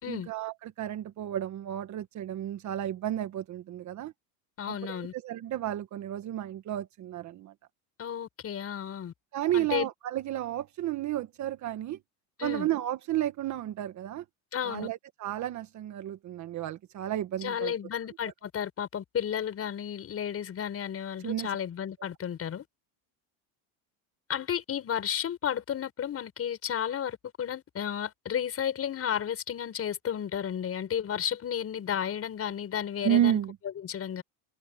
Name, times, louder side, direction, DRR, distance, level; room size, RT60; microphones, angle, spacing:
voice 1, 0.1-4.1 4.7-7.5 9.3-12.0 12.4-14.2 14.6-17.7 21.2-21.5 33.0-33.6, right 12 dB, 40° right, 1.5 m, -32 dB
voice 2, 4.6-5.1 8.0-9.1 9.5-9.9 12.4-12.7 14.5-14.9 17.4-22.6 24.3-33.4 33.8-34.2, left 9 dB, 30° left, 6.3 m, -33 dB
cardioid pair, 145°, 45 cm